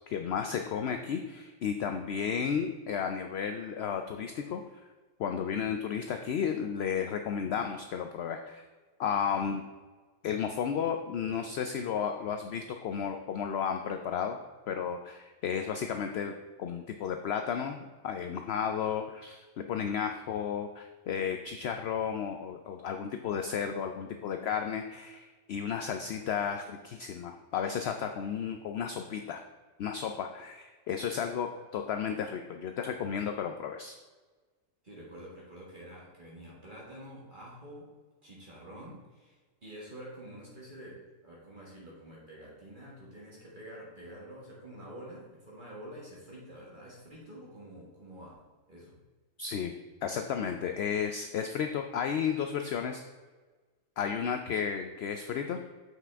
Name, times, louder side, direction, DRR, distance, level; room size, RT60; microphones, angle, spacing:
voice 1, 0.1-4.6 5.2-8.6 9.0-9.6 10.2-14.4 14.7-29.4 29.8-33.9 49.4-49.7 50.0-53.0 54.0-55.6, left 7 dB, 65° left, 5 dB, 0.7 m, -33 dB
voice 2, 34.8-37.9 38.2-48.4 48.7-49.0, equal, 40° right, -5 dB, 1.9 m, -48 dB
7.4 x 5.8 x 3.5 m, 1.3 s
omnidirectional pair, 1.4 m